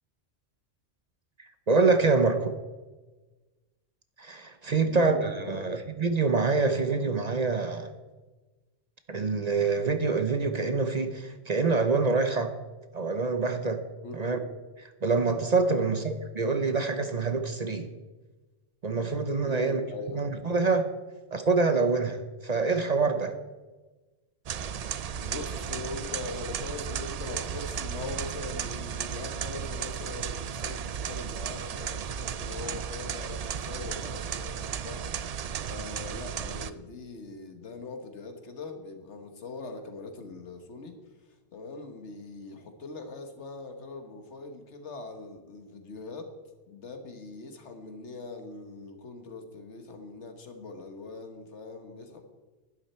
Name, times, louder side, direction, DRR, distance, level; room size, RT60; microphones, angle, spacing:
voice 1, 1.7-2.6 4.2-7.9 9.1-12.5 12.9-13.8 14.1-14.4 15.0-17.9 18.8-19.8 20.1-20.9 21.3-23.3, right 4 dB, 40° right, 8 dB, 0.8 m, -26 dB
voice 2, 4.7-5.8 14.0-14.4 15.7-16.0 19.4-20.3 25.2-35.1 35.6-46.3 46.7-52.2, left 3 dB, 80° left, 6 dB, 1.7 m, -41 dB
sound 1, 24.5-36.7, right 7 dB, 60° right, 0.4 m, -34 dB
11.5 x 11.0 x 4.3 m, 1.2 s
omnidirectional pair, 1.2 m